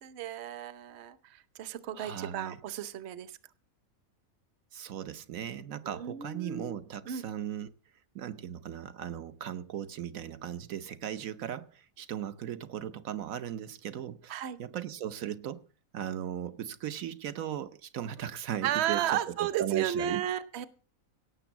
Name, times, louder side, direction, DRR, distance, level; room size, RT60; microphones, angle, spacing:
voice 1, 0.0-3.3 5.8-6.8 7.1-7.2 14.3-14.6 18.6-20.7, right 10 dB, 55° right, 1.0 m, -33 dB
voice 2, 1.9-2.6 4.7-7.7 8.1-14.3 14.6-15.7 15.9-20.2, right 10 dB, 75° right, 1.2 m, -37 dB
17.0 x 6.8 x 7.2 m
omnidirectional pair, 1.5 m